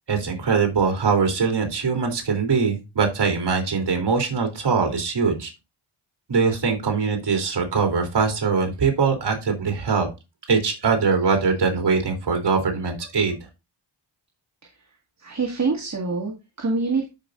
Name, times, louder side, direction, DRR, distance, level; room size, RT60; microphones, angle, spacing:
voice 1, 0.1-5.5 6.3-10.1 10.5-13.4, right 5 dB, 55° right, 3 dB, 3.2 m, -22 dB
voice 2, 15.2-17.1, right 4 dB, 35° right, 0 dB, 2.0 m, -25 dB
13.0 x 5.4 x 2.5 m, 0.25 s
wide cardioid pair, 110°, 49 cm